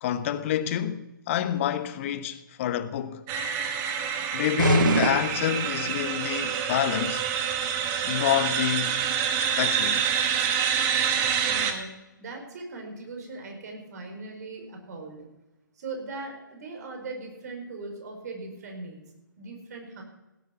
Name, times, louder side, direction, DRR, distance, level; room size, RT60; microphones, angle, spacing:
voice 1, 0.0-3.2 4.3-7.2 8.0-9.0 9.6-10.0, left 10 dB, 40° left, 1.0 m, -27 dB
sound 1, 3.3-11.7, right 8 dB, 25° right, 1.3 m, -27 dB
sound 2, 4.6-6.1, right 5 dB, 70° right, 1.6 m, -26 dB
voice 2, 11.4-15.3 15.7-19.0 19.4-20.0, right 3 dB, 55° right, 4.7 m, -39 dB
17.0 x 8.5 x 5.8 m
figure-of-eight pair, 135°, 11 cm